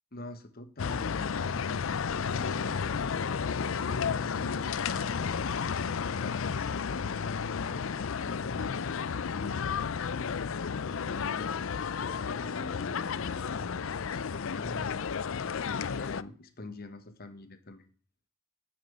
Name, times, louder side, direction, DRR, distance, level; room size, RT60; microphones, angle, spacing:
voice 1, 0.1-3.5 3.8-17.9, left 1 dB, 45° left, 10 dB, 1.4 m, -46 dB
sound 1, 0.8-16.2, left 6 dB, 65° left, 0.5 m, -32 dB
9.5 x 8.6 x 8.0 m, 0.43 s
head